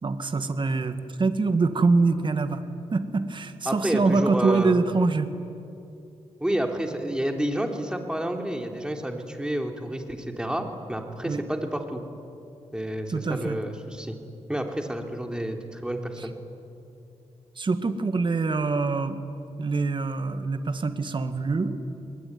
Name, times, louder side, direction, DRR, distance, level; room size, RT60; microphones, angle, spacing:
voice 1, 0.0-2.6 2.9-5.3 11.2-11.4 13.1-13.6 17.6-19.2 19.6-21.8, right 3 dB, 45° right, 9 dB, 2.0 m, -24 dB
voice 2, 3.6-4.7 6.4-12.0 12.7-14.2 14.5-16.3, right 1 dB, 5° right, 3 dB, 3.3 m, -29 dB
27.5 x 21.5 x 9.6 m, 2.7 s
cardioid pair, 85°, 12 cm